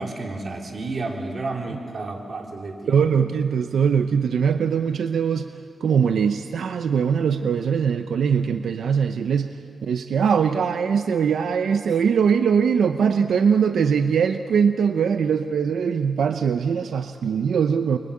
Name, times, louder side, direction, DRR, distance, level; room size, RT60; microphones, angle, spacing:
voice 1, 0.0-3.0, right 3 dB, 50° right, 1 dB, 3.6 m, -31 dB
voice 2, 2.9-5.5 5.8-18.0, right 6 dB, 90° right, 8 dB, 0.8 m, -21 dB
29.5 x 23.0 x 8.7 m, 2.5 s
wide cardioid pair, 105°, 0 cm